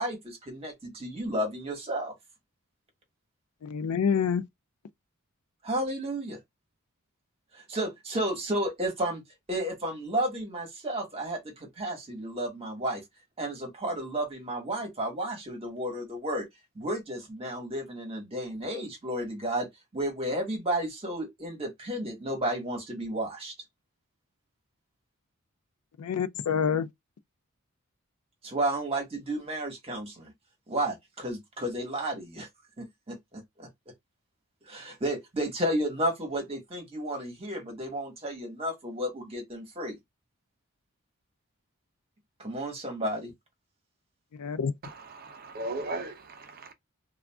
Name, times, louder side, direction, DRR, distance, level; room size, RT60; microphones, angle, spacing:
voice 1, 0.0-2.1 5.6-6.4 7.5-9.2 9.5-13.0 13.4-16.5 16.7-23.5 28.4-30.3 30.7-32.5 32.8-33.7 34.7-40.0 42.4-43.3, right 1 dB, 25° right, 1.2 m, -32 dB
voice 2, 3.6-4.5 26.0-26.9 44.3-44.7, left 7 dB, 85° left, 0.4 m, -27 dB
voice 3, 44.8-46.7, right 2 dB, 45° right, 0.5 m, -37 dB
2.5 x 2.3 x 3.3 m
head